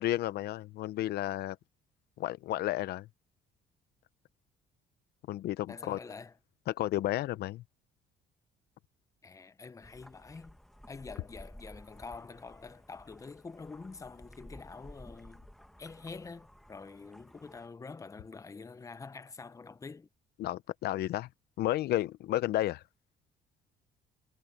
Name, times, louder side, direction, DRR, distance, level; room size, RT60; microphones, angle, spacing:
voice 1, 0.0-1.6 2.2-3.1 5.3-6.0 6.7-7.6 20.4-21.3 21.6-22.8, left 14 dB, 70° left, 0.8 m, -32 dB
voice 2, 5.7-6.3 9.2-10.6 10.9-15.5 15.8-20.1, left 4 dB, 20° left, 0.9 m, -46 dB
sound 1, 9.8-17.7, equal, ahead, 1.5 m, -54 dB
cardioid pair, 110°, 17 cm